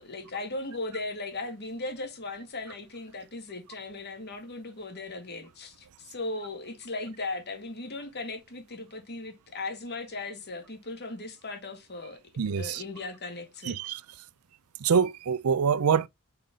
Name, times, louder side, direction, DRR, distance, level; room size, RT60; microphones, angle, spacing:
voice 1, 0.0-12.2 12.6-13.8, left 2 dB, 50° left, 2.0 m, -37 dB
voice 2, 12.4-12.8 13.6-14.0 14.8-16.1, right 6 dB, 80° right, 0.5 m, -25 dB
5.6 x 5.4 x 3.6 m
head